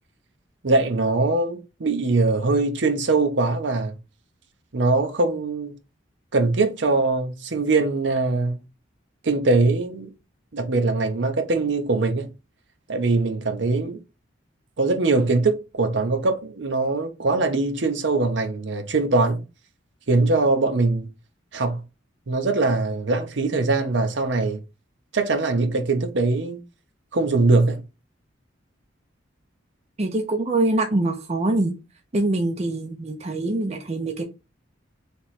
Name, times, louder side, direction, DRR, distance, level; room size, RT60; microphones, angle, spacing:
voice 1, 0.6-4.0 4.7-5.7 6.3-8.6 9.2-10.1 10.5-12.3 12.9-14.0 14.8-19.4 20.1-21.1 21.5-21.8 22.3-24.6 25.1-26.6 27.1-27.8, right 3 dB, 65° right, 0.8 m, -22 dB
voice 2, 30.0-31.7 32.1-34.2, right 2 dB, 35° right, 0.6 m, -24 dB
3.4 x 3.0 x 4.2 m
head